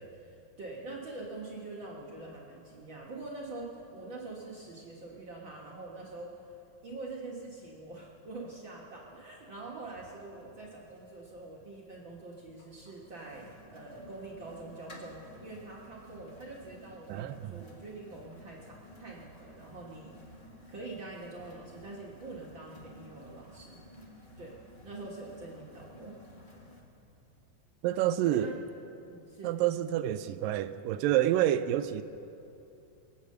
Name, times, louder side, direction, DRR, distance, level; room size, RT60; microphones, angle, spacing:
voice 1, 0.0-6.5 6.8-20.3 20.7-23.8 24.4-24.5 24.8-26.2 28.3-28.6 29.0-29.5, right 2 dB, 50° right, -4 dB, 1.5 m, -45 dB
sound 1, 9.9-26.8, left 1 dB, 25° left, 1.2 m, -54 dB
voice 2, 17.1-17.7 27.8-28.6 29.4-32.0, right 12 dB, 80° right, 12 dB, 2.2 m, -28 dB
24.0 x 8.8 x 6.6 m, 2.7 s
omnidirectional pair, 4.1 m